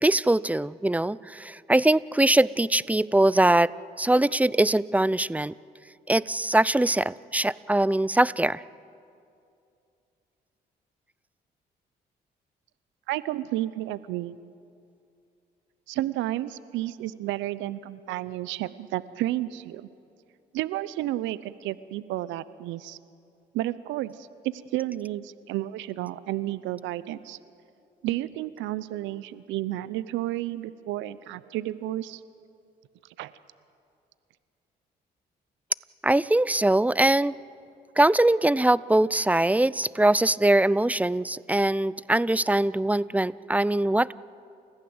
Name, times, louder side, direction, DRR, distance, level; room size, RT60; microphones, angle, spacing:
voice 1, 0.0-3.7 4.0-5.5 6.1-8.6 36.0-37.3 38.0-44.1, right 1 dB, 10° right, 20 dB, 0.6 m, -22 dB
voice 2, 13.1-14.4 15.9-19.9 20.5-23.0 23.5-27.4 28.0-32.2 33.2-33.3, right 15 dB, 80° right, 17 dB, 0.7 m, -31 dB
29.5 x 15.5 x 8.0 m, 2.5 s
hypercardioid pair, 50°, 19 cm